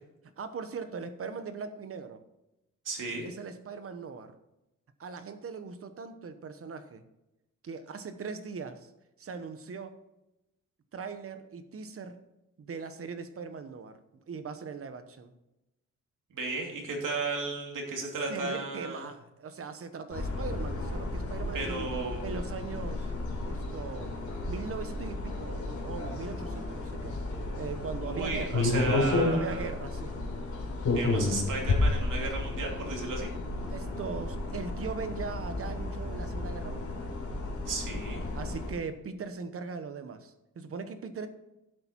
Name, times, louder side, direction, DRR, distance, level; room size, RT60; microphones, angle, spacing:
voice 1, 0.4-2.2 3.2-4.3 5.0-7.0 7.6-8.9 9.2-10.0 10.9-12.2 12.6-14.0 14.3-15.3 18.3-21.9 22.2-23.1 23.4-24.1 24.4-27.2 27.6-28.7 29.2-30.2 33.7-37.2 38.3-41.3, right 5 dB, 50° right, 10 dB, 1.0 m, -40 dB
voice 2, 2.8-3.3 16.3-19.0 21.5-22.2 28.0-29.7 30.9-33.3 37.6-38.2, right 3 dB, 90° right, 0 dB, 2.9 m, -34 dB
sound 1, 20.1-38.7, left 2 dB, 75° left, 3.3 m, -32 dB
11.5 x 8.1 x 4.5 m, 0.93 s
wide cardioid pair, 155°, 30 cm